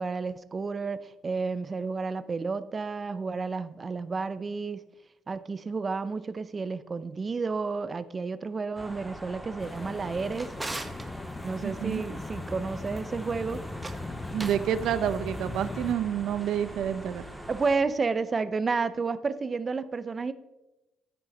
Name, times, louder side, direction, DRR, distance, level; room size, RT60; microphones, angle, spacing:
voice 1, 0.0-4.8 5.3-10.5 11.4-13.6 17.5-20.3, right 4 dB, 35° right, 0.6 m, -31 dB
sound 1, 8.8-17.8, right 1 dB, 5° right, 2.0 m, -43 dB
sound 2, 9.6-16.0, left 3 dB, 25° left, 0.6 m, -39 dB
Drawer open or close, 9.9-11.1 13.7-14.7, right 2 dB, 20° right, 1.1 m, -40 dB
voice 2, 11.6-12.0 14.3-17.2, right 9 dB, 80° right, 0.6 m, -28 dB
9.7 x 8.7 x 5.2 m
cardioid pair, 90°, 0 cm